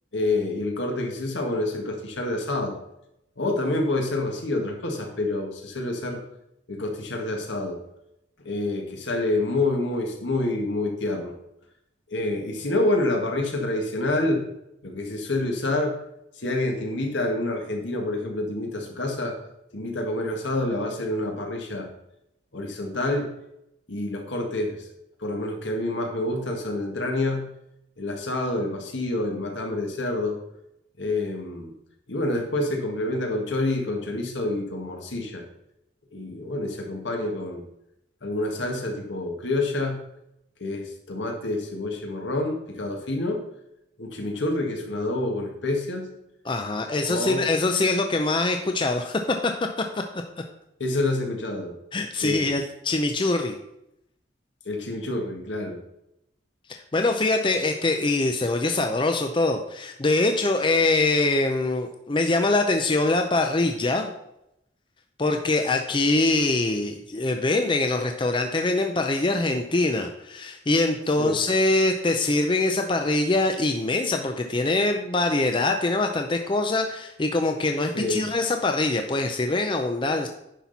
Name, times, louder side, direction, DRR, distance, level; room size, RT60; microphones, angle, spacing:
voice 1, 0.1-2.8 3.4-6.2 6.7-7.8 8.5-11.3 12.1-14.5 14.8-16.0 16.4-19.4 19.7-21.9 22.5-23.3 23.9-24.9 25.2-27.5 28.0-30.4 31.0-31.7 32.1-35.4 36.1-37.6 38.2-40.0 40.6-43.4 44.0-46.1 47.0-47.5 50.8-51.8 52.2-52.5 54.7-55.8 71.2-71.4 77.9-78.2, left 2 dB, 75° left, 2 dB, 1.8 m, -27 dB
voice 2, 46.4-49.5 49.9-50.0 51.9-53.6 56.7-64.1 65.2-80.3, left 2 dB, 25° left, 4 dB, 0.5 m, -23 dB
10.0 x 5.9 x 4.1 m, 0.82 s
head